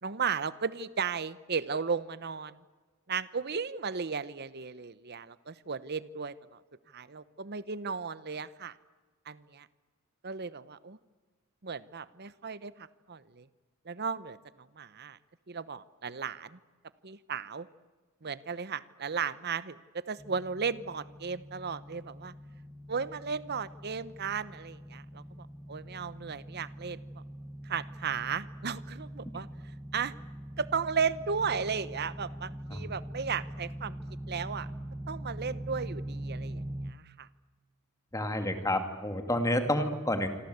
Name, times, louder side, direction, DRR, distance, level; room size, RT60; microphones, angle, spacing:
voice 1, 0.0-2.6 3.1-6.6 6.9-8.8 9.3-9.7 10.2-11.0 11.6-13.5 13.8-15.2 15.5-16.6 17.0-17.7 18.2-22.3 22.9-27.2 27.6-30.1 30.6-34.0 34.3-34.7 35.1-37.3, right 6 dB, 50° right, 15 dB, 0.9 m, -35 dB
sound 1, 20.2-36.9, right 1 dB, 5° right, 1.2 m, -43 dB
voice 2, 38.1-40.3, left 1 dB, 15° left, 7 dB, 2.5 m, -29 dB
27.5 x 25.5 x 8.1 m, 1.3 s
head